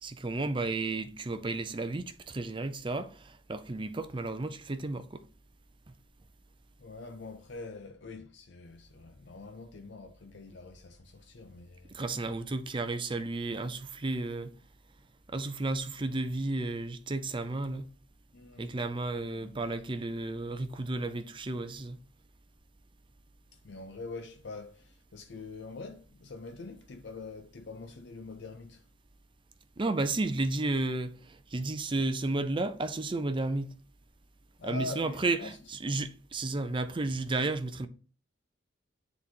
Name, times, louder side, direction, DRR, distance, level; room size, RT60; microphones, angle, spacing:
voice 1, 0.0-5.2 11.9-14.5 15.3-17.9 18.6-22.0 29.8-33.7 34.6-37.9, right 2 dB, 25° right, 0.5 m, -33 dB
voice 2, 6.8-12.0 18.3-18.8 19.2-19.8 23.6-28.9 34.6-35.6, left 3 dB, 65° left, 0.6 m, -44 dB
9.6 x 4.0 x 2.8 m
head